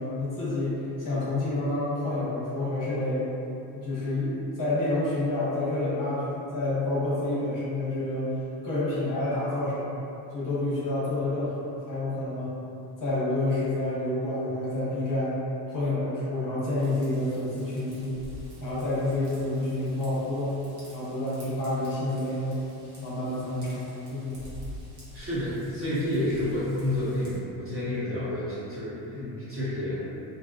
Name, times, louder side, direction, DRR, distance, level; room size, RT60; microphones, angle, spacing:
voice 1, 0.0-3.3 3.7-8.3 8.6-9.9 10.3-12.6 13.0-15.3 15.7-18.2 18.6-20.6 20.9-22.6 23.0-24.5 29.1-29.4, left 2 dB, 40° left, -9 dB, 1.0 m, -29 dB
Raindrop / Vehicle horn car horn honking / Trickle dribble, 16.8-27.4, equal, 55° right, 1.1 m, -48 dB
voice 2, 25.1-30.0, left 1 dB, 25° right, -12 dB, 1.1 m, -30 dB
2.7 x 2.2 x 2.4 m, 2.8 s
cardioid pair, 90°, 48 cm